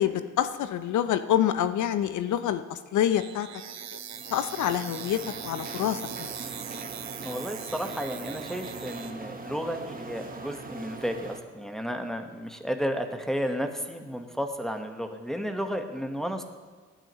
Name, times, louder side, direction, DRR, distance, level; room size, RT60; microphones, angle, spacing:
voice 1, 0.0-3.5 4.3-6.3, left 10 dB, 55° left, 11 dB, 0.7 m, -27 dB
sound 1, 3.1-9.1, right 9 dB, 50° right, 1.0 m, -41 dB
sound 2, 4.1-11.4, right 3 dB, 25° right, 1.4 m, -41 dB
voice 2, 7.2-16.4, equal, ahead, 5 dB, 1.4 m, -32 dB
18.0 x 8.8 x 3.1 m, 1.5 s
hypercardioid pair, 50°, 36 cm